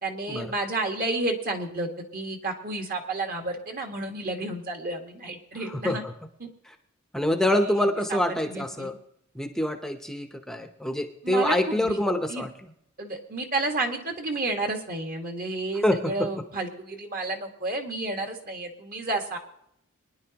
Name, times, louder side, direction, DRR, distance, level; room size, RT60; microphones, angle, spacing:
voice 1, 0.0-6.0 7.5-8.2 8.4-8.9 11.2-12.0 12.3-12.4 13.0-19.4, right 2 dB, 45° right, 3 dB, 1.7 m, -31 dB
voice 2, 5.7-6.1 7.1-9.0 9.3-12.5 15.8-16.1, left 1 dB, ahead, 5 dB, 0.8 m, -26 dB
23.0 x 10.5 x 2.9 m, 0.74 s
head